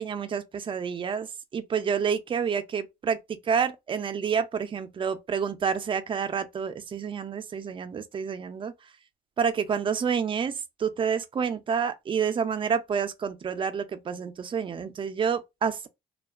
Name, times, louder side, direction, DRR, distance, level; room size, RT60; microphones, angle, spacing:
voice 1, 0.0-8.7 9.4-15.9, right 7 dB, 30° right, 0.4 m, -29 dB
2.4 x 2.2 x 2.3 m
cardioid pair, 110°, 17 cm